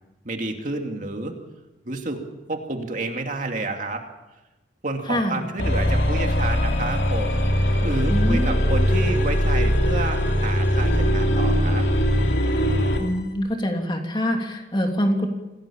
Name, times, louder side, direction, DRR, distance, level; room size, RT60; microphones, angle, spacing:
voice 1, 0.2-1.3 1.9-2.2 2.5-4.0 4.8-7.4 7.8-11.9, right 2 dB, 45° right, 3 dB, 2.5 m, -30 dB
voice 2, 5.1-5.4 8.1-8.5 13.0-15.3, equal, 25° left, 3 dB, 3.0 m, -24 dB
sound 1, 5.6-13.1, equal, 75° left, 3.1 m, -21 dB
26.0 x 17.5 x 7.2 m, 1.0 s
head